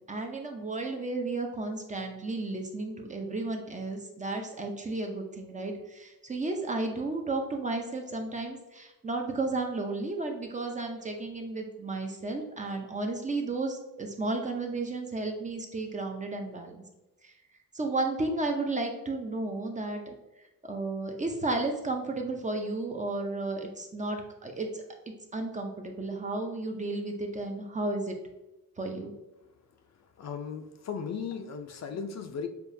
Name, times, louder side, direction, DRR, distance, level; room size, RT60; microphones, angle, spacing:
voice 1, 0.0-16.8 17.2-17.3 17.7-20.1 20.6-24.8 25.3-28.2 28.8-29.1, right 2 dB, 20° right, 3 dB, 0.6 m, -33 dB
voice 2, 30.2-32.5, left 6 dB, 50° left, 6 dB, 0.5 m, -36 dB
6.8 x 2.4 x 2.7 m, 1.0 s
cardioid pair, 125°, 34 cm